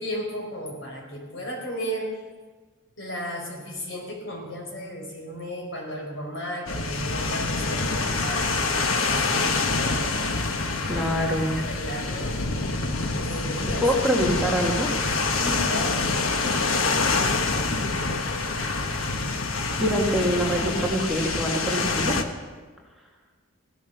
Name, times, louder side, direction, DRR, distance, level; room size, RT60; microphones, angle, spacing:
voice 1, 0.0-2.1 3.0-8.6 9.0-10.4 10.8-11.0 11.5-12.4 13.3-13.8 15.4-16.1, equal, 60° left, 0 dB, 4.5 m, -34 dB
sound 1, 6.7-22.2, left 3 dB, 75° left, 1.3 m, -26 dB
voice 2, 10.8-11.6 13.8-14.9 19.8-22.1, equal, ahead, -4 dB, 2.0 m, -24 dB
16.5 x 12.5 x 6.8 m, 1.4 s
head